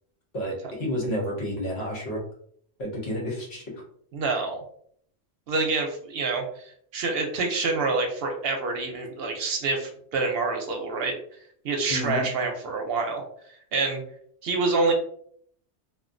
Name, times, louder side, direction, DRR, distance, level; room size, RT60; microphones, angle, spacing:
voice 1, 0.3-2.2 2.8-3.8 11.9-12.3, equal, 65° left, -2 dB, 1.2 m, -30 dB
voice 2, 4.1-4.6 5.5-11.2 11.6-13.2 13.7-14.0 14.4-14.9, right 3 dB, 65° right, 3 dB, 0.7 m, -27 dB
2.9 x 2.2 x 2.5 m, 0.64 s
omnidirectional pair, 1.2 m